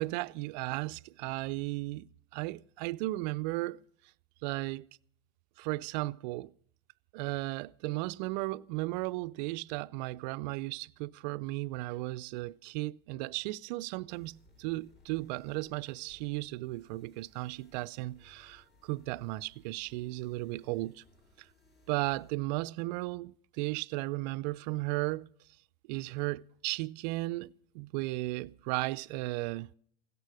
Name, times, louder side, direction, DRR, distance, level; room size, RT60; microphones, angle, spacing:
voice 1, 0.0-3.8 4.4-4.8 5.6-6.5 7.1-21.0 21.9-25.3 25.9-29.7, right 20 dB, 50° right, 0.5 m, -35 dB
sound 1, 14.1-22.3, left 2 dB, 40° left, 6.8 m, -64 dB
16.5 x 13.5 x 4.8 m
hypercardioid pair, 110°, 30 cm